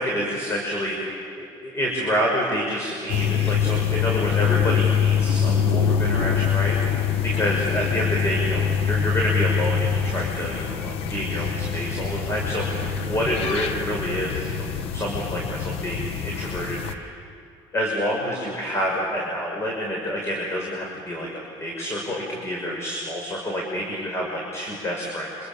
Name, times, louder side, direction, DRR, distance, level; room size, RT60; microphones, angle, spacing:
voice 1, 0.0-14.7 14.9-17.1 17.7-25.3, equal, 25° left, -2 dB, 6.1 m, -28 dB
sound 1, 3.1-16.9, left 7 dB, 70° left, 1.5 m, -24 dB
27.0 x 26.5 x 7.1 m, 2.5 s
supercardioid pair, 95°, 10 cm